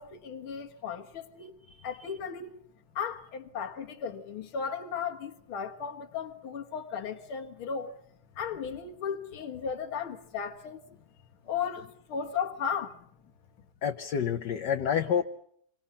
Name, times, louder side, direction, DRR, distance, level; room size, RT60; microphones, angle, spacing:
voice 1, 0.0-1.5 1.8-2.5 3.0-7.9 8.4-10.8 11.4-13.0, left 7 dB, 85° left, 2.4 m, -35 dB
voice 2, 13.8-15.2, left 8 dB, 60° left, 1.6 m, -28 dB
26.5 x 25.0 x 5.7 m
omnidirectional pair, 2.2 m